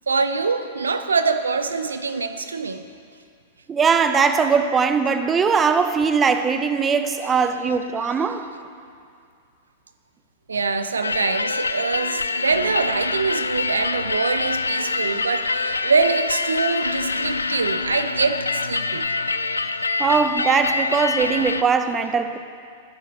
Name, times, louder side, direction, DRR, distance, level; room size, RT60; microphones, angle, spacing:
voice 1, 0.1-2.8 10.5-19.1 19.5-19.6, right 4 dB, 80° right, 10 dB, 0.6 m, -24 dB
voice 2, 3.7-8.5 20.0-22.4, right 5 dB, 20° right, 9 dB, 0.8 m, -20 dB
sound 1, 11.0-21.6, left 3 dB, 85° left, 0.4 m, -25 dB
23.0 x 8.0 x 4.3 m, 2.3 s
figure-of-eight pair, 100°, 0 cm